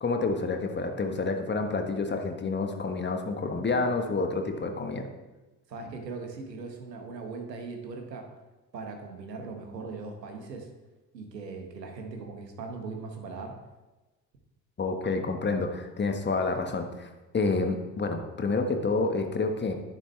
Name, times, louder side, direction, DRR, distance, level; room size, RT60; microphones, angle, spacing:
voice 1, 0.0-5.0 14.8-19.7, left 3 dB, 20° left, 5 dB, 1.5 m, -29 dB
voice 2, 5.7-8.3 8.7-10.7 11.1-13.5, right 4 dB, 75° right, 3 dB, 1.7 m, -39 dB
11.0 x 10.5 x 3.4 m, 1.1 s
figure-of-eight pair, 60°, 49 cm